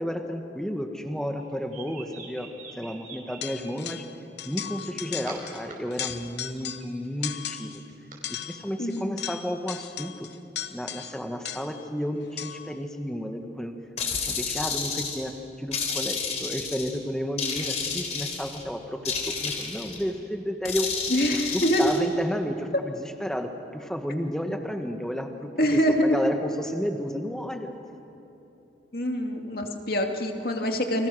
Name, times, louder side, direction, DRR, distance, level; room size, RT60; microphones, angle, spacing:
voice 1, 0.0-2.5 2.8-4.0 4.4-7.8 8.5-10.3 10.7-13.7 14.2-20.9 21.3-27.7, equal, 5° left, 4 dB, 1.5 m, -32 dB
sound 1, 1.4-3.7 4.6-5.7 6.1-8.2, right 4 dB, 45° right, 5.0 m, -46 dB
sound 2, 3.4-4.1 4.4-5.6 5.9-6.9 7.2-7.8 8.2-11.9 12.4-12.7, left 10 dB, 75° left, 1.0 m, -37 dB
voice 2, 8.8-9.2 21.1-22.0 25.6-26.2 28.9-31.1, equal, 55° left, 3 dB, 2.4 m, -25 dB
sound 3, 14.0-15.3 15.7-17.0 17.4-18.6 19.0-20.0 20.6-22.0, left 5 dB, 40° left, 3.5 m, -31 dB
30.0 x 26.0 x 6.4 m, 2.9 s
head